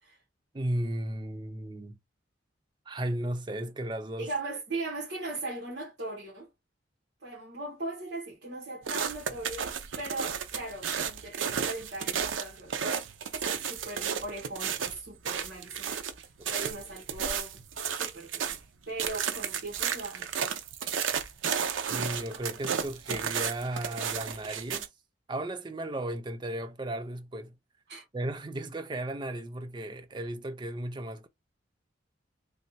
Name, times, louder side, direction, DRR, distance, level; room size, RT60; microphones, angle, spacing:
voice 1, 0.5-2.0 2.9-4.3 16.4-16.7 21.9-24.9 25.3-27.6 28.1-31.3, right 1 dB, 25° right, 0.5 m, -35 dB
voice 2, 4.2-6.5 7.2-12.8 13.4-20.3 27.9-28.0, right 2 dB, 60° right, 1.4 m, -39 dB
sound 1, 8.9-18.6 19.0-24.9, right 7 dB, 90° right, 0.6 m, -33 dB
3.3 x 2.9 x 2.7 m
head